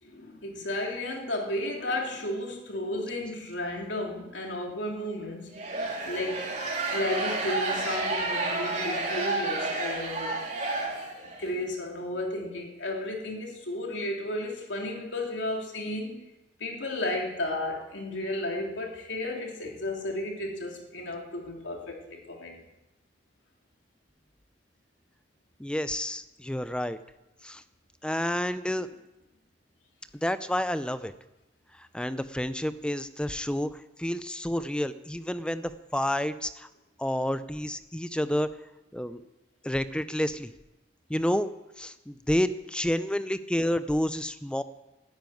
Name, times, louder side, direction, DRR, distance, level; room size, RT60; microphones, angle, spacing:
voice 1, 0.0-5.6 6.0-6.5 6.9-10.4 11.4-16.2 16.6-22.6, left 1 dB, 75° left, 1 dB, 3.0 m, -33 dB
sound 1, 5.5-11.4, right 2 dB, 40° right, 3.6 m, -30 dB
voice 2, 25.6-27.0 27.4-27.6 28.0-28.9 30.2-31.1 31.8-36.7 37.0-38.5 38.9-39.2 39.6-40.5 41.1-41.5 41.8-44.6, equal, 5° left, 12 dB, 0.5 m, -29 dB
13.5 x 10.5 x 9.2 m, 0.98 s
head